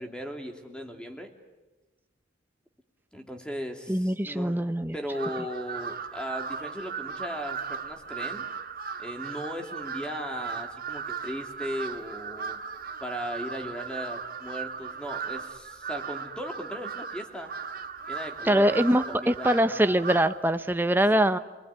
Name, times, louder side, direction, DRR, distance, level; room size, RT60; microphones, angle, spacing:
voice 1, 0.0-1.3 3.1-4.6 4.9-8.4 9.0-12.6 13.0-17.5 18.1-19.8 21.1-21.2, equal, 5° left, 3 dB, 2.7 m, -37 dB
voice 2, 3.9-5.0 18.4-21.4, right 1 dB, 10° right, 10 dB, 0.8 m, -23 dB
Crow, 5.1-20.5, right 6 dB, 50° right, 1.5 m, -37 dB
29.0 x 20.0 x 9.8 m, 1.2 s
head